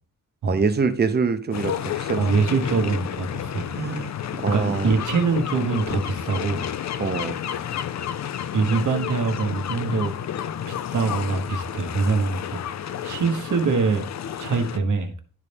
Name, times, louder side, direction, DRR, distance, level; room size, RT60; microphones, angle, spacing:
voice 1, 0.5-2.2 2.7-2.8 3.8-4.1 4.4-4.9 7.0-7.4, right 5 dB, 30° right, 10 dB, 0.7 m, -25 dB
sound 1, 1.5-14.8, left 9 dB, 60° left, 0.5 m, -31 dB
voice 2, 2.1-3.7 4.5-6.7 8.5-10.1 10.7-12.6 13.0-14.0 14.4-15.1, right 4 dB, 70° right, 6 dB, 1.2 m, -24 dB
11.5 x 4.1 x 3.4 m, 0.43 s
wide cardioid pair, 145°, 32 cm